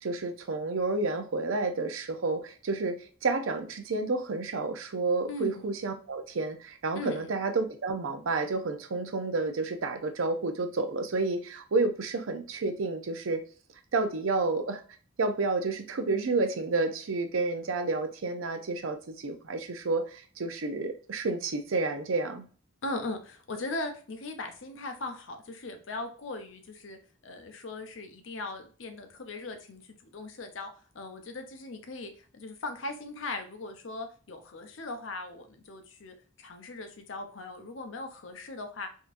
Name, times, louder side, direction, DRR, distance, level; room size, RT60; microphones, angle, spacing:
voice 1, 0.0-13.4 13.9-14.8 15.2-22.4, right 3 dB, 85° right, 0.6 m, -30 dB
voice 2, 5.3-5.6 7.0-7.2 22.8-27.0 27.2-30.7 30.9-38.9, left 2 dB, 75° left, 0.6 m, -39 dB
3.7 x 2.7 x 2.5 m
head